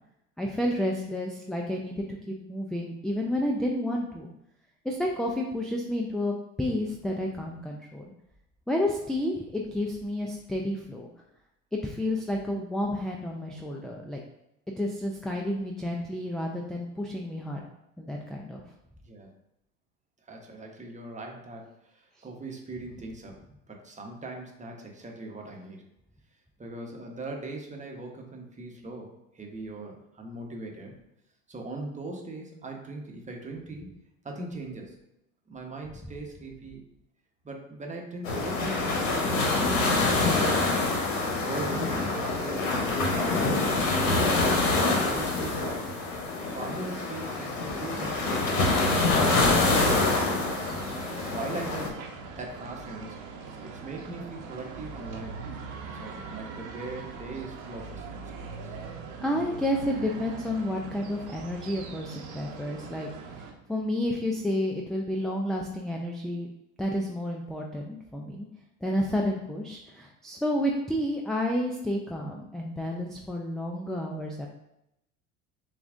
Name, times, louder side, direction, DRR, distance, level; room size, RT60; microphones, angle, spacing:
voice 1, 0.4-4.3 4.8-8.0 8.7-11.1 11.8-14.2 14.8-17.6 18.0-18.6 59.2-66.5 66.8-68.5 68.8-74.5, left 1 dB, ahead, -1 dB, 0.4 m, -30 dB
voice 2, 20.3-23.3 23.7-25.8 26.6-30.9 31.5-33.9 34.2-35.0 35.5-36.8 37.4-40.3 40.6-40.9 41.2-42.6 43.1-44.3 44.7-45.9 46.4-50.5 51.2-51.9 52.4-53.2 53.6-55.4 55.9-58.7, right 2 dB, 20° right, 1 dB, 1.0 m, -40 dB
sound 1, 38.2-51.9, left 3 dB, 80° left, 1.0 m, -26 dB
sound 2, 48.4-63.5, right 5 dB, 50° right, 0.9 m, -41 dB
6.8 x 2.5 x 2.5 m, 0.83 s
hypercardioid pair, 75°, 38 cm